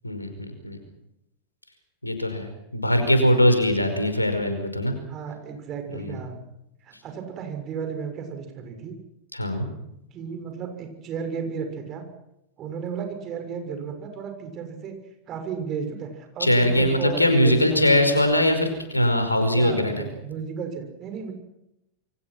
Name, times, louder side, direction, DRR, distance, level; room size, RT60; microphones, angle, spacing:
voice 1, 2.0-5.0 5.9-6.2 9.3-9.7 16.4-20.1, left 1 dB, 85° left, 7 dB, 5.1 m, -21 dB
voice 2, 5.1-6.4 6.8-9.0 10.1-12.1 12.6-14.9 15.3-18.2 19.5-21.3, right 6 dB, 30° right, 5 dB, 6.3 m, -34 dB
27.5 x 24.5 x 6.1 m, 0.84 s
figure-of-eight pair, 90°, 0 cm